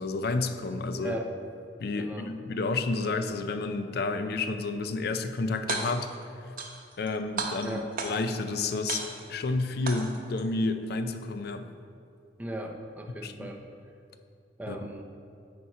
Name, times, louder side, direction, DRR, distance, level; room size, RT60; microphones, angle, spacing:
voice 1, 0.0-1.1 1.8-6.1 7.0-9.0 9.3-11.7 13.2-13.5 14.7-14.8, left 3 dB, 60° left, 8 dB, 0.4 m, -30 dB
voice 2, 1.0-1.3 2.0-2.4 7.6-7.9 12.4-13.6 14.6-15.0, right 1 dB, 10° right, 2 dB, 0.5 m, -37 dB
sound 1, 5.5-6.2 6.6-7.1 7.4-8.4 8.9-9.4 9.9-10.4, right 4 dB, 55° right, 0.8 m, -34 dB
8.5 x 4.2 x 4.8 m, 2.4 s
head